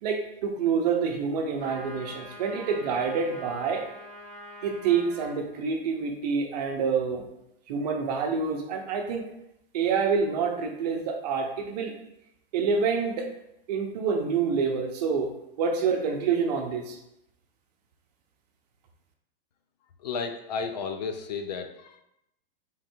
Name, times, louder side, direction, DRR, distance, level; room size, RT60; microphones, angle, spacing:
voice 1, 0.0-3.8 4.6-7.2 7.7-9.2 9.7-11.9 12.5-13.3 13.7-15.3 15.6-17.0, right 5 dB, 45° right, 3 dB, 0.8 m, -27 dB
sound 1, 1.6-5.4, equal, 20° left, 1.6 m, -44 dB
voice 2, 20.0-22.0, left 5 dB, 45° left, 7 dB, 0.4 m, -33 dB
3.7 x 3.2 x 4.5 m, 0.83 s
supercardioid pair, 165°, 30 cm